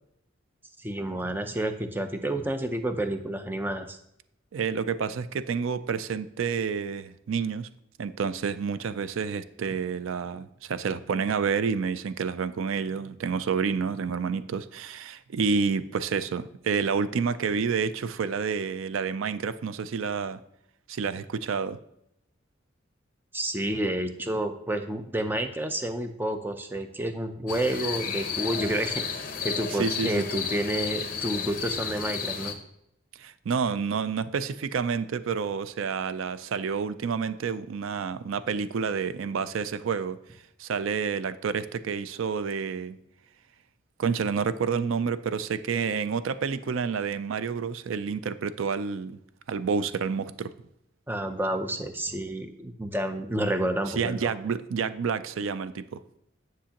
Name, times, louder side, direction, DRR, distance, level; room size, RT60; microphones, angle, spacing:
voice 1, 0.8-4.0 23.3-32.6 51.1-54.3, right 1 dB, 10° right, 8 dB, 0.5 m, -30 dB
voice 2, 4.5-7.7 8.0-20.4 20.9-21.8 29.8-30.2 33.2-40.2 40.6-43.0 44.0-49.2 49.5-50.5 54.0-56.0, right 6 dB, 80° right, 13 dB, 0.4 m, -29 dB
sound 1, 27.5-32.5, left 6 dB, 45° left, 0.8 m, -32 dB
10.0 x 6.1 x 2.9 m, 0.77 s
head